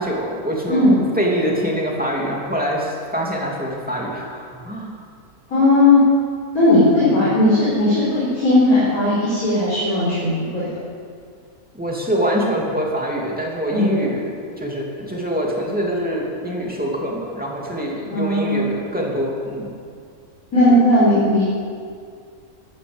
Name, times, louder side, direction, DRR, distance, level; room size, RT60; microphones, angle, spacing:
voice 1, 0.0-5.0 7.0-7.3 11.7-19.7, equal, 5° right, -3 dB, 2.9 m, -24 dB
voice 2, 0.7-1.0 5.5-6.0 6.5-10.8 13.7-13.9 18.1-18.7 20.5-21.4, left 1 dB, 70° left, -9 dB, 5.1 m, -16 dB
13.5 x 12.0 x 8.1 m, 2.2 s
omnidirectional pair, 1.6 m